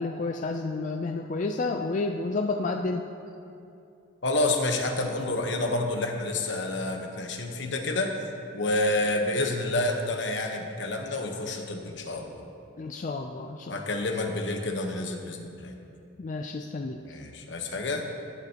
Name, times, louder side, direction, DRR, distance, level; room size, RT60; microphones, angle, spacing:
voice 1, 0.0-3.1 12.8-13.8 16.2-17.2, left 3 dB, 40° left, 4 dB, 0.3 m, -30 dB
voice 2, 4.2-8.1 8.5-12.4 13.7-15.7 16.9-18.1, left 2 dB, 70° left, 3 dB, 1.0 m, -29 dB
18.0 x 7.8 x 2.9 m, 2.6 s
head